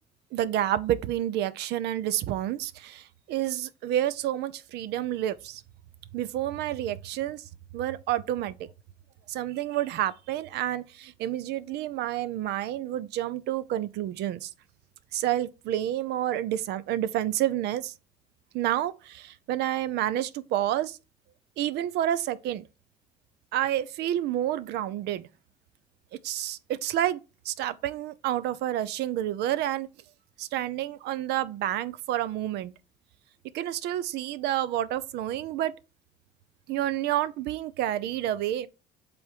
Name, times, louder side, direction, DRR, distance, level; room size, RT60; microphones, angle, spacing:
voice 1, 0.3-5.6 6.1-7.4 7.7-8.6 9.3-14.5 15.1-17.9 18.5-21.0 21.6-22.6 23.5-25.3 26.2-27.2 27.4-29.9 30.4-32.7 33.5-35.7 36.7-38.7, right 12 dB, 80° right, 0.6 m, -29 dB
7.8 x 3.6 x 4.5 m
cardioid pair, 110°, 17 cm